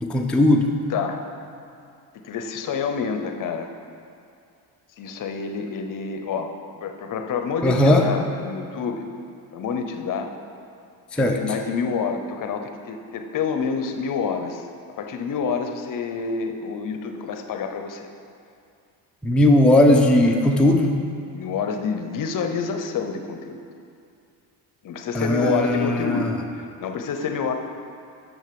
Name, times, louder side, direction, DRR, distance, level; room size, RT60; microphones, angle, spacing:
voice 1, 0.0-0.7 7.6-8.1 11.1-11.4 19.2-21.0 25.1-26.3, left 1 dB, 5° left, 1 dB, 0.5 m, -18 dB
voice 2, 0.9-1.2 2.2-3.7 5.0-6.5 6.8-9.1 9.5-10.3 11.2-14.6 15.0-18.1 21.3-23.6 24.8-26.3 26.8-27.5, left 5 dB, 50° left, 5 dB, 0.8 m, -28 dB
6.3 x 6.2 x 6.9 m, 2.5 s
cardioid pair, 110°, 41 cm